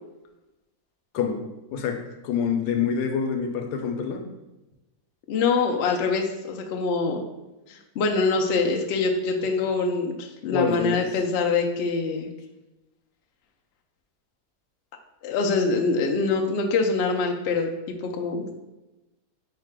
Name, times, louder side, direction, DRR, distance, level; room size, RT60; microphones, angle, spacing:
voice 1, 1.7-4.3 10.5-11.0, left 6 dB, 85° left, 5 dB, 1.2 m, -26 dB
voice 2, 5.3-7.2 7.7-12.3 15.2-18.5, left 4 dB, 65° left, 2 dB, 0.6 m, -24 dB
4.7 x 2.2 x 4.7 m, 1.0 s
omnidirectional pair, 1.7 m